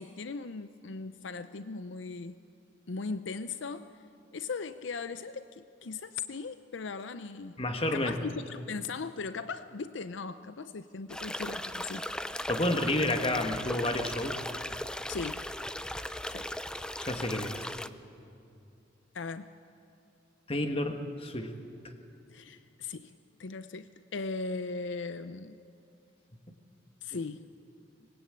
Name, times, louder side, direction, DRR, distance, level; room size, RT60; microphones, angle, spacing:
voice 1, 0.0-2.3 2.9-3.9 4.3-7.6 7.9-12.1 15.1-15.4 16.3-16.5 19.1-19.5 22.3-23.1 23.4-25.6 27.0-27.5, left 4 dB, 75° left, 12 dB, 0.6 m, -38 dB
voice 2, 7.6-8.1 12.5-14.4 17.0-17.7 20.5-21.5, left 1 dB, 30° left, 6 dB, 1.6 m, -30 dB
sound 1, 11.1-17.9, left 1 dB, 5° left, 0.5 m, -37 dB
24.5 x 20.0 x 8.7 m, 2.6 s
head